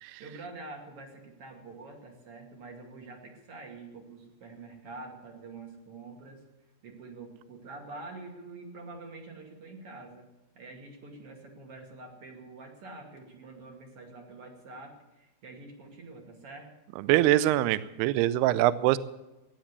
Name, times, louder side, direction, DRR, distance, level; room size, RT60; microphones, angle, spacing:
voice 1, 0.2-6.4 6.8-10.3 10.5-16.7, right 3 dB, 40° right, 2 dB, 2.5 m, -46 dB
voice 2, 17.0-19.0, right 15 dB, 80° right, 16 dB, 2.4 m, -24 dB
16.0 x 10.5 x 8.1 m, 1.0 s
omnidirectional pair, 5.2 m